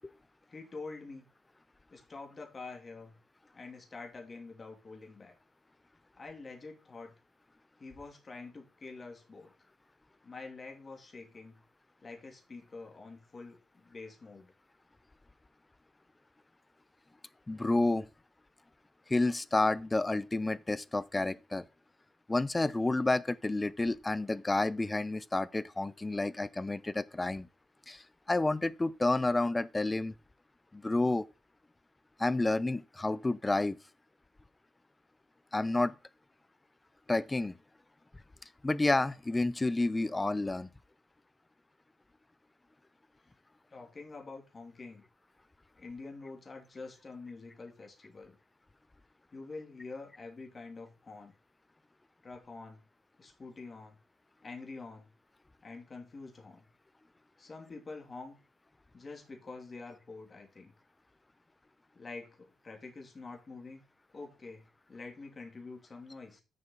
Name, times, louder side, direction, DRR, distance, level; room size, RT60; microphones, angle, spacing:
voice 1, 0.5-1.3 1.9-3.1 3.5-5.3 6.2-7.1 7.8-9.5 10.2-11.6 12.0-14.5 43.7-45.0 45.7-48.4 49.3-51.3 52.2-52.8 53.2-54.0 54.4-55.1 55.6-56.7 57.4-58.4 58.9-60.7 61.9-63.8 64.1-66.4, left 3 dB, 35° left, 2.7 m, -46 dB
voice 2, 17.5-18.1 19.1-21.6 22.3-27.5 27.9-30.1 30.7-31.3 32.2-33.8 35.5-35.9 37.1-37.6 38.6-40.7, left 2 dB, 15° left, 0.6 m, -30 dB
9.0 x 6.8 x 4.0 m
cardioid pair, 90°, 0 cm